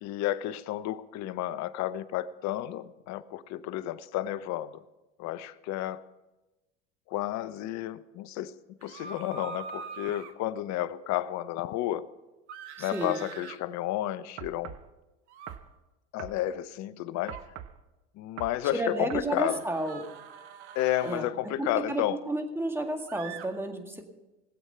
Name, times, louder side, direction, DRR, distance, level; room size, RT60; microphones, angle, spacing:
voice 1, 0.0-4.8 5.2-6.0 7.1-8.5 8.8-12.1 12.8-14.8 16.1-17.4 18.2-19.6 20.7-22.2, left 13 dB, 55° left, 15 dB, 0.8 m, -32 dB
sound 1, 8.8-10.3 12.5-13.6 15.3-15.5 17.1-17.5 19.4-21.3 23.1-23.5, right 6 dB, 85° right, 1.4 m, -43 dB
voice 2, 12.8-13.2 18.7-20.1 21.0-21.3 21.6-24.0, right 1 dB, 5° right, 4 dB, 2.1 m, -32 dB
sound 2, 14.4-14.9 15.5-15.7 16.2-16.4 17.3-17.8 18.4-18.6 19.1-19.3, right 11 dB, 50° right, 0.9 m, -42 dB
20.0 x 8.2 x 5.6 m, 1.1 s
hypercardioid pair, 90°, 34 cm